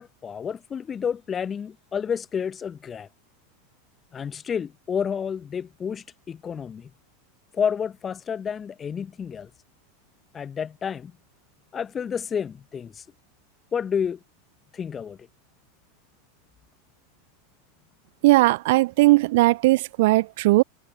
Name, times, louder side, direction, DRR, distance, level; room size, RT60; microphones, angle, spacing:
voice 1, 0.0-3.1 4.1-6.9 7.5-9.5 10.3-11.1 11.7-13.0 13.7-14.2 14.7-15.2, left 7 dB, 25° left, 0.9 m, -30 dB
voice 2, 18.2-20.6, right 20 dB, 60° right, 0.3 m, -18 dB
figure-of-eight pair, 85°, 0 cm